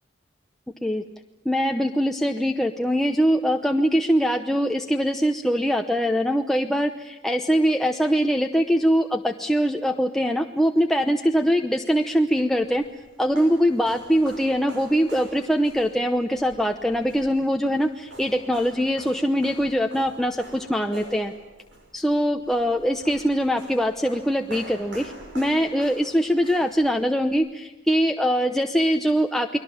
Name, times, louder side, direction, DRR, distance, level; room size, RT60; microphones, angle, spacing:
voice 1, 1.4-12.8 13.2-21.3 21.9-29.6, equal, ahead, 3 dB, 0.8 m, -22 dB
sound 1, 12.3-27.3, right 1 dB, 65° right, 5.9 m, -45 dB
30.0 x 21.5 x 7.2 m, 1.1 s
head